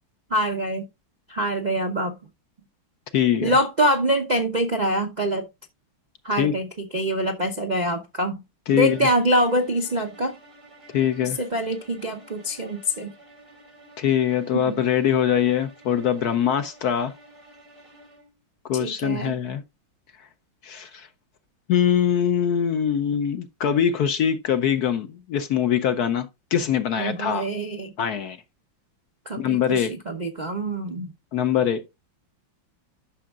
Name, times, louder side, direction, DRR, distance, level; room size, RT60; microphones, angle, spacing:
voice 1, 0.3-0.8 1.3-2.1 3.4-5.5 6.2-8.4 8.7-10.4 11.4-13.1 14.5-14.8 18.7-19.4 27.0-27.9 29.3-31.1, equal, 50° right, 0.5 m, -25 dB
voice 2, 3.1-3.5 6.4-6.5 8.7-9.0 10.9-11.4 14.0-17.1 18.7-19.6 20.6-21.1 21.7-27.5 28.0-28.4 29.4-29.9 31.3-31.8, left 9 dB, 65° left, 1.0 m, -23 dB
sound 1, 8.7-18.4, right 1 dB, 15° right, 2.9 m, -50 dB
11.5 x 6.3 x 2.4 m
omnidirectional pair, 2.1 m